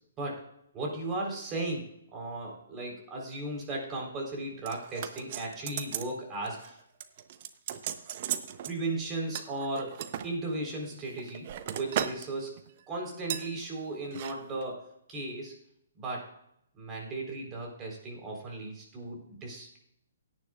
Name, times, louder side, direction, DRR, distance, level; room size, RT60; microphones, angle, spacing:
voice 1, 0.7-6.8 8.7-15.5 16.0-16.2 16.8-19.8, right 2 dB, 20° right, -1 dB, 3.9 m, -36 dB
sound 1, 4.7-6.1 6.4-6.7 7.0-8.7 9.3-10.3 10.9-12.3 12.6-12.8 13.3-13.5 14.0-14.3 14.6-14.7, right 10 dB, 40° right, 0.8 m, -36 dB
17.0 x 9.7 x 2.4 m, 0.74 s
figure-of-eight pair, 130°, 0 cm